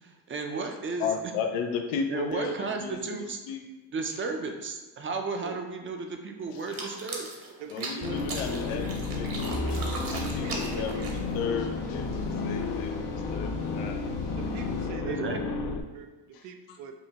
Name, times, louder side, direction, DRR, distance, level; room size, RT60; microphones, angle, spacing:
voice 1, 0.0-1.1 2.1-3.4 3.9-7.3 15.0-15.4, right 4 dB, 25° right, 4 dB, 0.5 m, -33 dB
voice 2, 1.0-3.0 3.5-3.7 6.7-6.8 7.7-10.1 10.3-13.0 13.3-14.0 16.7-16.8, left 6 dB, 90° left, 4 dB, 0.6 m, -34 dB
sound 1, 6.6-11.4, right 2 dB, 45° right, 1.0 m, -38 dB
voice 3, 7.6-8.2 10.2-11.1 14.4-15.4 15.9-16.9, right 6 dB, 85° right, 6 dB, 0.6 m, -42 dB
sound 2, 8.0-15.8, left 4 dB, 40° left, 0.4 m, -32 dB
sound 3, 9.4-14.9, right 1 dB, 70° left, 1.4 m, -40 dB
5.4 x 2.1 x 2.9 m, 1.1 s
supercardioid pair, 80°, 47 cm